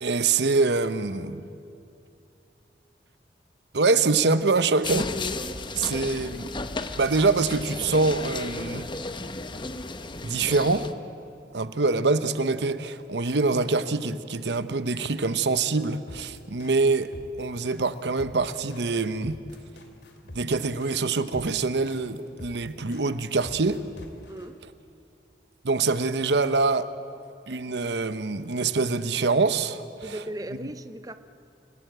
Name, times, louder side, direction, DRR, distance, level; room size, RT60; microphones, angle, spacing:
voice 1, 0.0-1.5 3.7-5.1 5.8-6.5 7.0-8.9 10.2-10.9 11.5-17.1 17.4-19.4 20.3-23.8 25.6-26.9 27.5-30.1, right 3 dB, 70° right, 0.9 m, -25 dB
sound 1, 4.8-10.9, left 3 dB, 25° left, 0.9 m, -34 dB
sound 2, 16.1-24.5, left 1 dB, 75° left, 2.7 m, -45 dB
voice 2, 24.3-24.6 30.0-31.2, right 1 dB, 20° right, 0.6 m, -37 dB
28.5 x 17.5 x 8.0 m
head